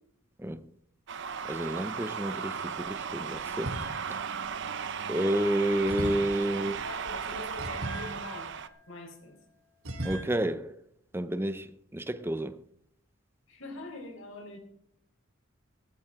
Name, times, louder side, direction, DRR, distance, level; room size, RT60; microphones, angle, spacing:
sound 1, 1.1-8.7, right 6 dB, 60° right, 0.8 m, -36 dB
voice 1, 1.5-3.8 4.1-4.2 5.1-6.8 10.0-10.8 11.1-12.6, right 1 dB, 10° right, 0.7 m, -30 dB
sound 2, 3.6-4.3 5.9-9.3 9.8-10.2, right 1 dB, 90° right, 3.9 m, -39 dB
voice 2, 6.5-8.6 8.9-9.4 13.5-14.6, left 1 dB, 65° left, 4.4 m, -43 dB
15.0 x 14.5 x 3.8 m
head